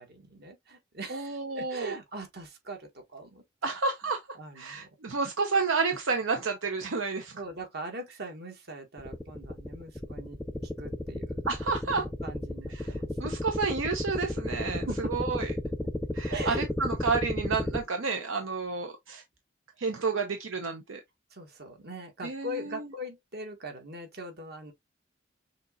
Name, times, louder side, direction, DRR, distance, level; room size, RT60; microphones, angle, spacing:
voice 1, 0.0-3.7 4.4-4.9 7.4-11.4 11.9-13.5 14.9-15.1 16.3-16.7 21.3-24.7, right 1 dB, 55° right, 1.5 m, -41 dB
voice 2, 1.1-2.0 3.6-4.2 4.5-7.4 11.5-12.1 12.7-15.5 16.1-19.2 19.8-21.0 22.2-22.9, right 4 dB, 80° right, 0.7 m, -30 dB
sound 1, 9.0-17.8, left 1 dB, 5° left, 0.4 m, -33 dB
6.4 x 2.9 x 2.4 m
head